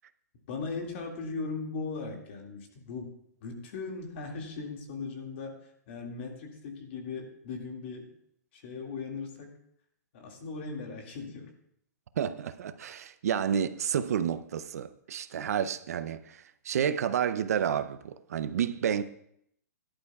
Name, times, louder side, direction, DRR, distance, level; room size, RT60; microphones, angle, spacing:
voice 1, 0.5-3.1 3.4-8.1 8.5-9.5 10.1-11.5, left 4 dB, 40° left, 2.1 m, -38 dB
voice 2, 12.2-19.0, right 8 dB, 65° right, 0.6 m, -30 dB
17.0 x 11.5 x 2.3 m
hypercardioid pair, 160°, 9 cm